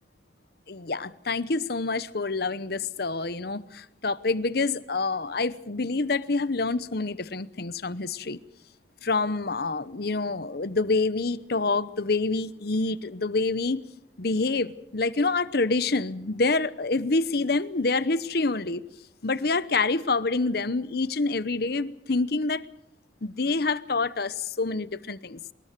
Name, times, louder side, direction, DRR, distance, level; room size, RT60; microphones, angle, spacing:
voice 1, 0.7-8.4 9.0-13.8 14.2-18.8 19.2-22.6 23.2-25.4, left 3 dB, 60° left, 0.9 m, -27 dB
23.5 x 20.5 x 6.7 m
head